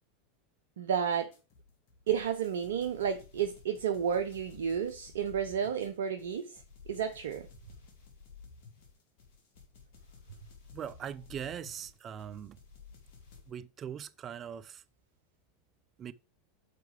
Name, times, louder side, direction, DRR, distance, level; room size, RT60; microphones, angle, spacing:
voice 1, 0.8-1.3 2.1-6.6 6.9-7.5, right 8 dB, 75° right, 0.6 m, -31 dB
sound 1, 1.3-13.5, left 5 dB, 60° left, 2.0 m, -54 dB
voice 2, 10.7-12.6 13.5-14.8 16.0-16.1, right 8 dB, 35° right, 0.5 m, -41 dB
6.8 x 4.6 x 4.9 m
hypercardioid pair, 90°, 0 cm